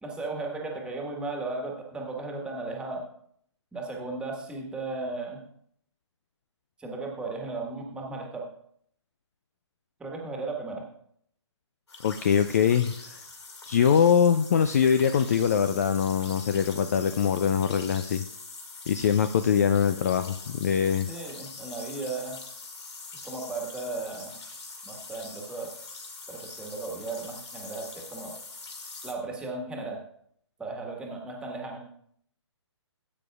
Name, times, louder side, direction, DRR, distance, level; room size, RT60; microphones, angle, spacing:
voice 1, 0.0-3.1 3.7-5.4 6.8-8.5 10.0-10.8 21.1-22.4 23.2-24.4 24.8-25.7 26.3-28.4 29.0-30.0 30.6-31.9, right 3 dB, 5° right, 0 dB, 1.6 m, -35 dB
sound 1, 11.9-29.1, left 3 dB, 65° left, 2.6 m, -43 dB
voice 2, 12.0-13.2 13.7-18.2 18.9-21.1, left 7 dB, 30° left, 10 dB, 0.4 m, -23 dB
18.0 x 9.1 x 2.4 m, 0.66 s
figure-of-eight pair, 135°, 16 cm